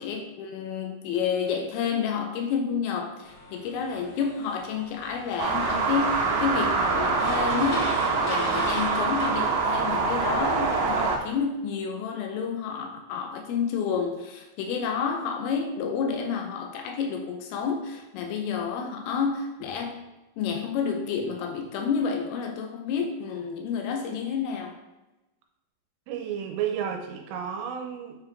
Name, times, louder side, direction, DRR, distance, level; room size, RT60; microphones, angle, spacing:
voice 1, 0.0-20.0 20.4-24.8, left 6 dB, 85° left, 3 dB, 3.2 m, -30 dB
sound 1, 3.2-9.3, left 2 dB, 65° left, 3.5 m, -39 dB
sound 2, 5.4-11.2, right 4 dB, 65° right, 2.6 m, -25 dB
voice 2, 26.1-28.2, right 8 dB, 85° right, 2 dB, 3.2 m, -32 dB
9.0 x 4.8 x 3.4 m, 1.0 s
omnidirectional pair, 5.8 m